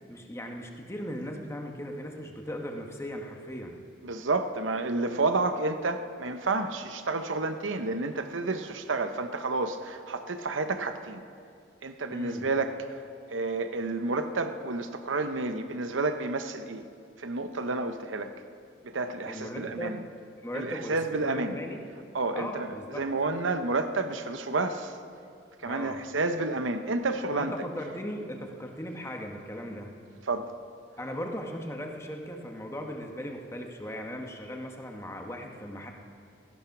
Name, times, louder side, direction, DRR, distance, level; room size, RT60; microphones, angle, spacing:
voice 1, 0.1-3.8 12.1-12.5 19.3-20.0 20.4-21.8 22.3-23.0 25.6-26.0 27.3-29.9 31.0-35.9, equal, 15° left, 1.3 m, -38 dB
voice 2, 4.0-11.2 11.8-13.0 13.3-16.8 17.2-18.3 18.8-20.0 20.5-21.6 22.1-25.0 25.6-27.5 30.3-30.5, right 3 dB, 85° right, 0.8 m, -30 dB
16.5 x 14.5 x 6.0 m
head